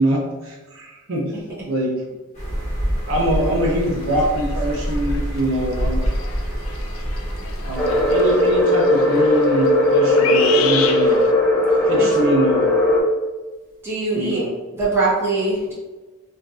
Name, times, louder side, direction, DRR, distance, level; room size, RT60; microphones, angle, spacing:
voice 1, 0.0-1.3 1.7-1.9 3.1-6.0 7.7-11.2 11.8-12.7 14.1-14.6, right 1 dB, 70° right, -2 dB, 0.6 m, -23 dB
sound 1, 2.3-8.6, equal, 35° left, 1.1 m, -26 dB
sound 2, 3.4-3.5 3.8-11.3, left 7 dB, 80° left, 0.4 m, -31 dB
sound 3, 7.8-13.0, left 1 dB, 5° left, 0.5 m, -17 dB
voice 2, 13.8-14.5 14.8-15.7, right 3 dB, 10° right, -9 dB, 0.9 m, -21 dB
3.1 x 2.4 x 2.4 m, 1.2 s
head